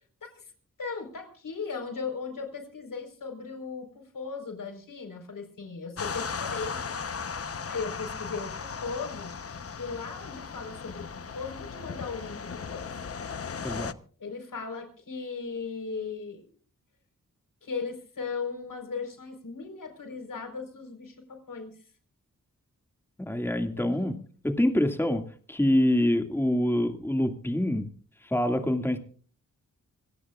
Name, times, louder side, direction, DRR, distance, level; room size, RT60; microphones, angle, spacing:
voice 1, 0.2-0.5 0.8-6.9 7.7-9.3 9.8-12.9 14.2-16.5 17.6-21.8 23.8-24.1, left 5 dB, 75° left, 6 dB, 4.4 m, -37 dB
sound 1, 6.0-13.9, left 5 dB, 45° left, 1.0 m, -37 dB
voice 2, 13.6-13.9 23.2-24.2 24.4-25.2 25.5-27.9 28.2-29.0, left 1 dB, 5° left, 6 dB, 2.1 m, -25 dB
26.5 x 16.5 x 2.4 m, 0.42 s
cardioid pair, 60°, 33 cm